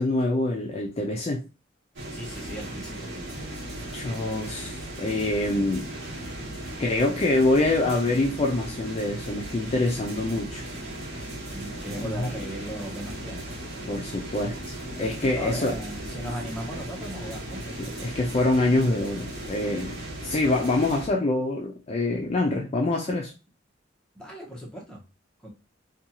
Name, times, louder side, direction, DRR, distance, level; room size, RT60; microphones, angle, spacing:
voice 1, 0.0-1.4 3.9-5.9 6.8-10.6 12.0-12.3 13.9-15.8 17.8-23.3, left 2 dB, 35° left, 0 dB, 0.4 m, -25 dB
sound 1, 2.0-21.1, right 1 dB, 85° right, 1.0 m, -37 dB
voice 2, 2.1-3.5 11.5-13.6 15.2-17.8 24.1-25.0 25.4-25.5, equal, 5° left, -3 dB, 0.7 m, -37 dB
2.6 x 2.3 x 2.8 m, 0.30 s
head